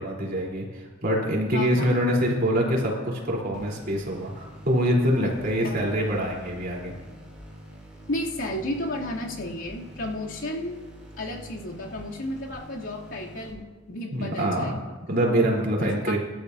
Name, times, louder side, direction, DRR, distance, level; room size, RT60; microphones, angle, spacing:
voice 1, 0.0-6.9 14.1-14.7 15.1-16.2, equal, 50° right, -2 dB, 3.8 m, -25 dB
voice 2, 1.5-1.8 5.2-5.3 5.6-5.9 8.1-10.8 11.2-15.0 16.0-16.2, left 1 dB, 75° left, -4 dB, 2.9 m, -33 dB
sound 1, 3.5-13.5, equal, 5° right, 5.6 m, -46 dB
25.5 x 12.5 x 2.8 m, 1.3 s
head